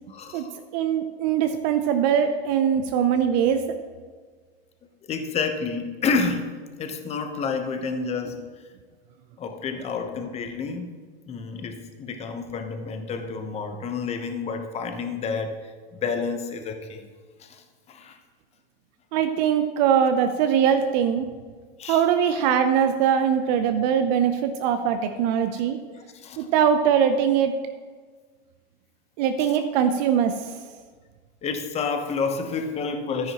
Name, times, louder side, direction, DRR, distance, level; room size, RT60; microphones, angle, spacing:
voice 1, 0.1-0.5 5.1-6.5 6.8-8.4 9.4-10.9 11.3-15.5 15.9-17.1 17.4-17.6 17.9-18.2 21.8-22.0 26.1-26.5 29.4-29.5 31.4-33.3, left 5 dB, 20° left, 6 dB, 1.0 m, -29 dB
voice 2, 0.7-3.6 19.1-21.3 21.9-25.8 26.4-27.5 29.2-30.3, right 8 dB, 45° right, 8 dB, 0.7 m, -21 dB
13.0 x 10.0 x 3.0 m, 1.5 s
hypercardioid pair, 130°, 31 cm